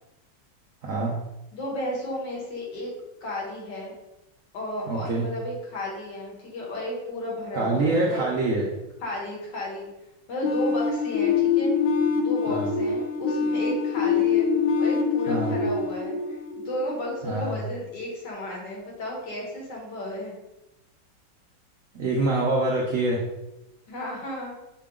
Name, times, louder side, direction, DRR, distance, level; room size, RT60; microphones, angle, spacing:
voice 1, 0.8-1.2 4.9-5.2 7.5-8.7 12.5-12.7 15.3-15.5 17.2-17.6 21.9-23.2, right 2 dB, 80° right, -3 dB, 0.7 m, -25 dB
voice 2, 1.5-2.9 3.2-3.9 4.5-8.2 9.0-9.9 10.3-11.7 12.1-14.5 14.8-20.3 23.9-24.5, left 1 dB, 65° left, -2 dB, 1.7 m, -33 dB
sound 1, 10.4-17.2, left 5 dB, 90° left, 1.4 m, -24 dB
5.7 x 2.2 x 3.6 m, 0.96 s
omnidirectional pair, 2.2 m